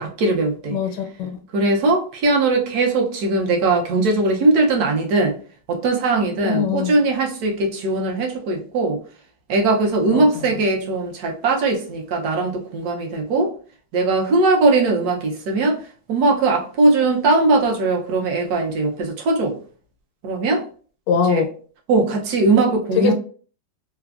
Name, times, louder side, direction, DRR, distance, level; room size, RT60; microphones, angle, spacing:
voice 1, 0.0-0.8 1.5-5.3 5.7-9.0 9.5-13.5 13.9-15.8 16.1-19.5 20.2-20.6 21.3-21.4 21.9-23.1, right 3 dB, 70° right, 1 dB, 1.1 m, -19 dB
voice 2, 0.7-1.4 6.4-6.9 10.1-10.5 21.1-21.5 22.9-23.1, left 6 dB, 90° left, 4 dB, 1.2 m, -22 dB
3.3 x 2.0 x 2.3 m, 0.42 s
omnidirectional pair, 1.9 m